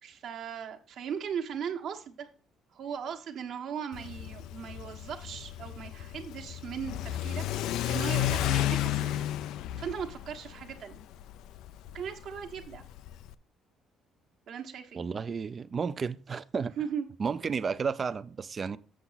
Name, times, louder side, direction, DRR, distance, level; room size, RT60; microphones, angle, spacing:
voice 1, 0.0-2.3 2.7-9.3 9.8-11.0 11.9-12.8 14.5-15.0 16.8-17.1, right 7 dB, 60° right, 1.3 m, -38 dB
Car / Accelerating revving vroom, 3.9-13.3, left 12 dB, 80° left, 0.4 m, -33 dB
voice 2, 14.9-16.7 17.2-18.8, right 5 dB, 30° right, 0.4 m, -32 dB
7.7 x 6.9 x 4.0 m
cardioid pair, 150°, 0 cm